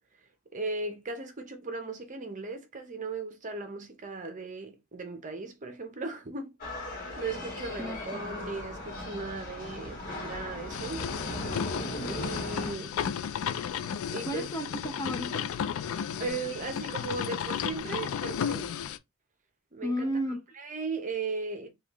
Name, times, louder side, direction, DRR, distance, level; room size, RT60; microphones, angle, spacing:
voice 1, 0.5-11.0 12.1-13.0 14.1-14.5 16.2-18.8 19.7-20.1 20.6-21.7, right 3 dB, 35° right, 0.7 m, -37 dB
sound 1, 6.6-12.7, left 1 dB, 45° left, 1.3 m, -38 dB
voice 2, 7.8-8.5 14.2-15.4 19.8-20.4, equal, 15° left, 0.6 m, -33 dB
sound 2, 10.7-19.0, left 8 dB, 70° left, 0.3 m, -33 dB
3.7 x 2.4 x 3.0 m
head